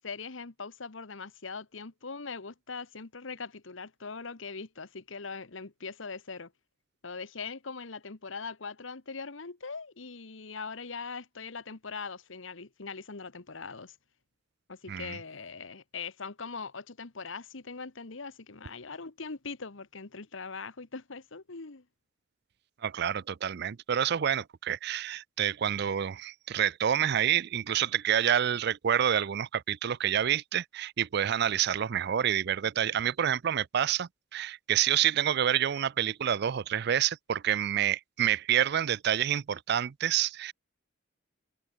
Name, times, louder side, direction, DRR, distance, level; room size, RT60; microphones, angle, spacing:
voice 1, 0.0-6.5 7.0-13.9 14.7-21.8, left 4 dB, 75° left, 1.3 m, -41 dB
voice 2, 14.9-15.2 22.8-40.5, right 9 dB, 55° right, 0.4 m, -28 dB
head